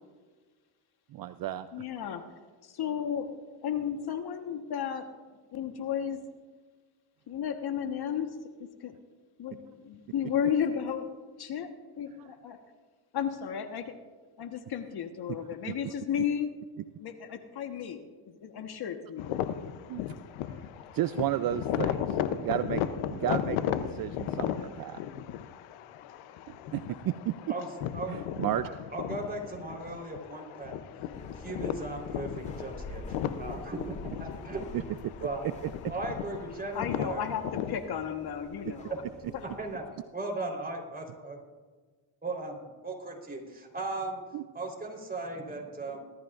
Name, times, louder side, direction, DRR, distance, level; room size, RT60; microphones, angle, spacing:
voice 1, 1.1-1.7 15.7-15.9 19.9-20.0 20.5-20.6 20.9-22.8 23.1-25.0 26.5-27.3 28.1-28.7 34.7-34.8 35.4-35.5 44.3-44.4, right 13 dB, 50° right, 12 dB, 0.5 m, -33 dB
voice 2, 1.7-2.2 2.7-3.3 3.6-5.1 5.5-6.2 7.3-8.3 8.8-8.9 9.4-11.1 11.4-11.7 12.0-12.6 13.1-13.9 14.4-16.5 17.0-19.4 36.7-38.9, left 8 dB, 55° left, 6 dB, 1.4 m, -33 dB
sound 1, 19.2-37.8, left 10 dB, 85° left, 0.8 m, -36 dB
voice 3, 28.6-30.7 31.3-33.0 33.4-33.8 34.2-34.6 35.2-35.4 35.9-37.3 38.9-39.0 39.4-39.8 40.1-41.4 42.2-44.2 44.5-46.0, right 2 dB, 20° right, 0 dB, 4.0 m, -37 dB
sound 2, 31.1-39.8, left 2 dB, 15° left, 2.0 m, -46 dB
20.0 x 13.0 x 2.5 m, 1.4 s
supercardioid pair, 85°, 46 cm